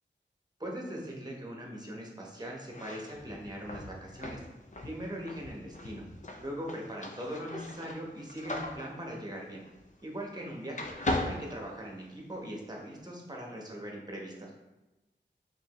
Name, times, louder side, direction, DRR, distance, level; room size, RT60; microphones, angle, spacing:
voice 1, 0.6-4.4 4.8-6.0 6.4-9.6 10.0-10.9 11.2-14.5, equal, 20° right, -1 dB, 0.9 m, -40 dB
sound 1, 2.6-10.4 10.7-12.4, left 1 dB, 40° left, 0.5 m, -39 dB
5.1 x 2.7 x 3.0 m, 1.0 s
wide cardioid pair, 70°, 19 cm